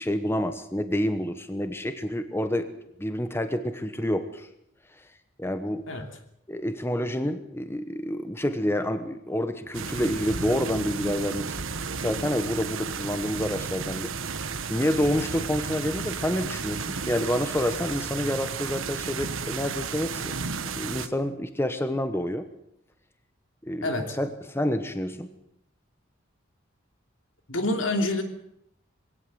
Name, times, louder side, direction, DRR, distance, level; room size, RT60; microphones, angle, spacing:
voice 1, 0.0-2.7 3.0-4.5 4.9-5.0 5.4-5.9 6.5-11.6 12.0-14.1 14.4-22.5 23.6-25.3, equal, 10° left, 9 dB, 1.1 m, -28 dB
sound 1, 9.7-21.1, right 5 dB, 80° right, 1.3 m, -33 dB
voice 2, 23.8-24.1 27.5-28.2, left 2 dB, 75° left, 5 dB, 3.0 m, -27 dB
21.5 x 17.5 x 7.8 m, 0.74 s
head